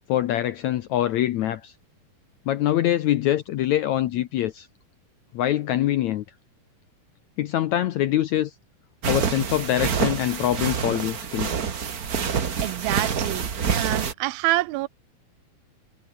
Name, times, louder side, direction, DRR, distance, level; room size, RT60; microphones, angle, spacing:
voice 1, 0.1-1.7 2.5-4.7 5.3-6.2 7.4-8.5 9.1-11.6, left 12 dB, 75° left, 1.7 m, -24 dB
sound 1, 9.0-14.1, right 6 dB, 55° right, 1.0 m, -27 dB
voice 2, 12.6-13.5 13.8-14.9, right 19 dB, 85° right, 2.5 m, -26 dB
omnidirectional pair, 4.3 m